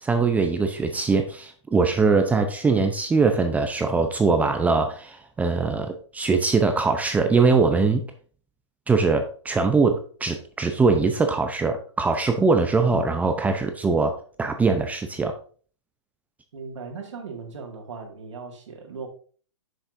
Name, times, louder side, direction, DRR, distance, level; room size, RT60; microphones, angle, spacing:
voice 1, 0.0-8.0 8.9-15.3, right 4 dB, 10° right, 0.6 m, -22 dB
voice 2, 16.5-19.1, right 5 dB, 80° right, 2.0 m, -38 dB
8.0 x 6.4 x 2.6 m
hypercardioid pair, 130°, 15 cm